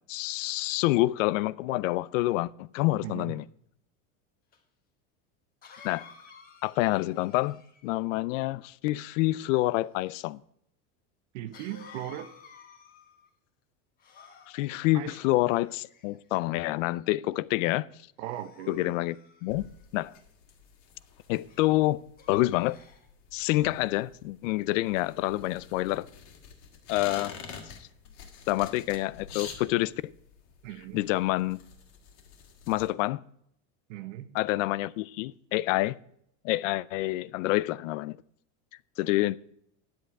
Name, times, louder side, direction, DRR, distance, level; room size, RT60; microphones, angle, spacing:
voice 1, 0.1-3.4 5.8-6.1 6.6-10.4 14.5-17.9 18.7-19.2 19.4-19.7 19.9-20.1 21.3-22.8 23.3-26.1 26.9-27.4 27.7-27.8 28.5-30.1 30.9-31.6 32.7-33.2 34.3-36.0 36.4-38.2 39.0-39.4, left 18 dB, 80° left, 0.5 m, -27 dB
voice 2, 3.0-3.3 11.3-12.3 14.9-15.2 18.2-19.0 30.6-31.0 33.9-34.3, right 13 dB, 65° right, 1.1 m, -38 dB
Cough, 4.5-4.6 5.6-8.0 11.5-13.3 14.0-14.9 15.7-16.3 16.9-17.2 18.2-19.8 21.5-21.7 22.2-23.1, left 6 dB, 25° left, 1.3 m, -53 dB
sound 1, 19.5-32.9, left 6 dB, 45° left, 1.9 m, -47 dB
10.5 x 7.9 x 4.7 m
cardioid pair, 175°, 38 cm